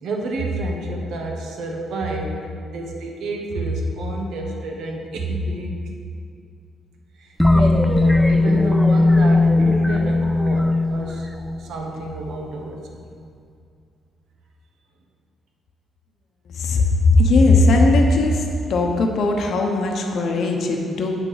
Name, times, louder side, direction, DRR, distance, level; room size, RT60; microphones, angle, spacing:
voice 1, 0.0-5.9 7.2-11.3 11.6-13.1, right 1 dB, 75° right, 1 dB, 1.3 m, -29 dB
sound 1, 7.4-12.1, left 2 dB, 5° left, 0.4 m, -17 dB
voice 2, 16.5-18.4 18.7-21.2, left 2 dB, 65° left, 2 dB, 0.9 m, -18 dB
8.2 x 6.3 x 5.0 m, 2.4 s
cardioid pair, 90°, 0 cm